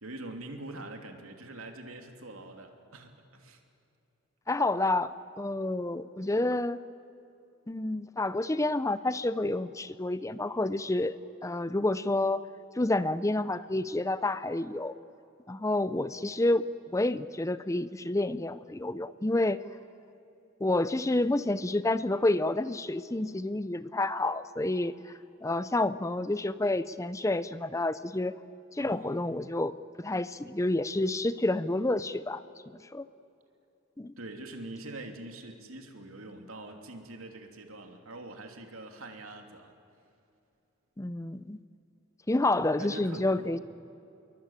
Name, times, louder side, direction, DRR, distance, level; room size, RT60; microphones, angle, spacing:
voice 1, 0.0-3.6 28.8-29.2 34.2-39.7 42.8-43.5, right 2 dB, 90° right, 4 dB, 3.0 m, -44 dB
voice 2, 4.5-6.8 7.7-11.2 11.4-12.4 12.8-14.9 15.5-16.6 16.9-19.6 20.6-24.9 25.4-28.4 28.7-32.4 32.9-33.0 34.0-34.1 41.0-41.6 42.3-43.6, left 2 dB, 15° left, 14 dB, 0.5 m, -29 dB
27.0 x 22.5 x 9.0 m, 2.6 s
head